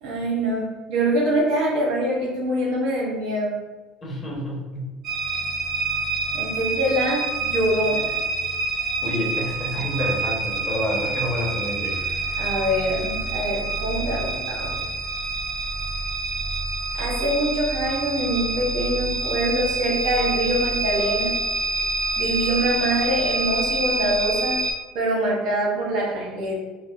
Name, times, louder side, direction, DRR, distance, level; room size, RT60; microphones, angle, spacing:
voice 1, 0.0-3.5 6.3-8.1 12.4-14.8 16.9-21.4 22.2-24.6 24.9-26.5, right 1 dB, 75° right, -3 dB, 0.9 m, -24 dB
voice 2, 4.0-4.8 9.0-12.0, equal, 20° left, -4 dB, 1.0 m, -28 dB
sound 1, 5.0-24.7, right 3 dB, 40° right, 0.8 m, -27 dB
4.6 x 2.0 x 2.4 m, 1.2 s
cardioid pair, 125°, 0 cm